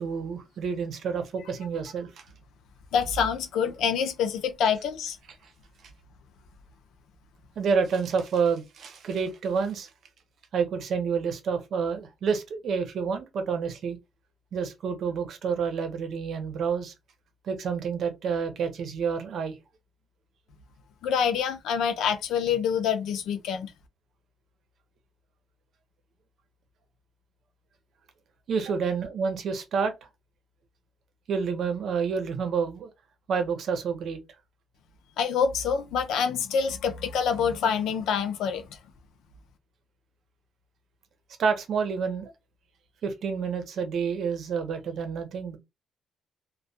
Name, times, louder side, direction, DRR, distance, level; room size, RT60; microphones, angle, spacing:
voice 1, 0.0-2.2 7.6-9.9 10.5-14.0 14.5-16.9 17.4-19.5 28.5-29.9 31.3-32.9 33.3-34.2 41.4-42.3 43.0-45.6, right 6 dB, 65° right, 0.7 m, -29 dB
voice 2, 2.9-5.2 21.0-23.7 35.2-38.7, left 7 dB, 85° left, 0.5 m, -26 dB
2.2 x 2.1 x 2.7 m
cardioid pair, 110°, 0 cm